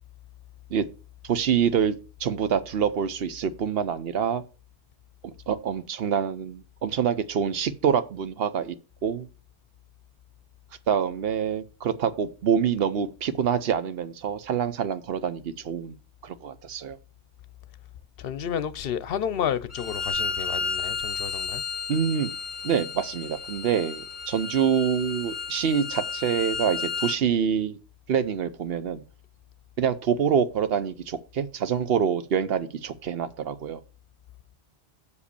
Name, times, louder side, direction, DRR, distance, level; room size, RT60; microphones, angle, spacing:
voice 1, 1.2-1.9 2.2-4.4 5.2-8.7 9.0-9.3 10.9-16.0 16.2-17.0 21.9-22.3 22.6-27.8 28.1-29.0 29.8-33.8, right 7 dB, 70° right, 0.9 m, -26 dB
voice 2, 18.2-21.6, left 8 dB, 65° left, 0.8 m, -31 dB
Bowed string instrument, 19.7-27.2, left 5 dB, 35° left, 0.7 m, -32 dB
6.7 x 5.1 x 6.7 m
omnidirectional pair, 1.1 m